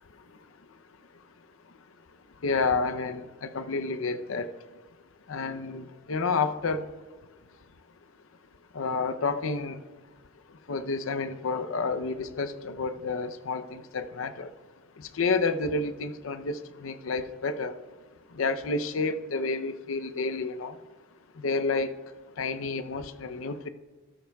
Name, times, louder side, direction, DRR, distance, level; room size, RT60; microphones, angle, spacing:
voice 1, 2.4-4.5 5.3-6.8 8.7-9.8 10.7-14.5 15.2-17.7 18.4-20.7 21.4-21.9 22.4-23.7, left 4 dB, 75° left, 10 dB, 0.6 m, -30 dB
13.5 x 12.5 x 2.3 m, 1.3 s
head